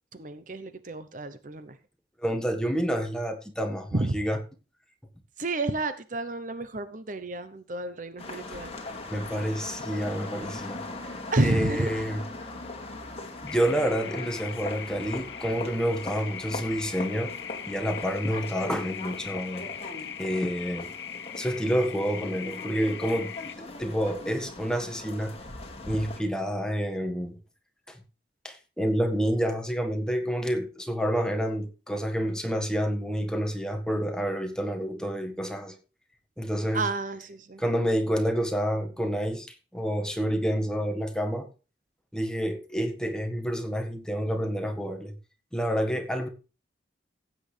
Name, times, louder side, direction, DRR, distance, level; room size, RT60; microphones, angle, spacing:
voice 1, 0.1-1.8 3.9-4.2 5.4-8.7 11.3-11.9 36.7-37.6, right 2 dB, 45° right, 0.9 m, -30 dB
voice 2, 2.2-4.4 9.1-10.8 11.4-12.2 13.4-17.3 17.7-19.7 20.2-20.9 21.4-25.3 25.9-27.4 27.9-28.0 28.4-35.8 36.4-36.8 37.6-41.5 42.1-45.1 45.5-46.3, equal, 5° left, 1.6 m, -28 dB
sound 1, 8.2-26.2, left 2 dB, 35° left, 2.4 m, -40 dB
sound 2, 13.5-23.5, left 8 dB, 85° left, 0.9 m, -40 dB
16.0 x 8.7 x 3.4 m
head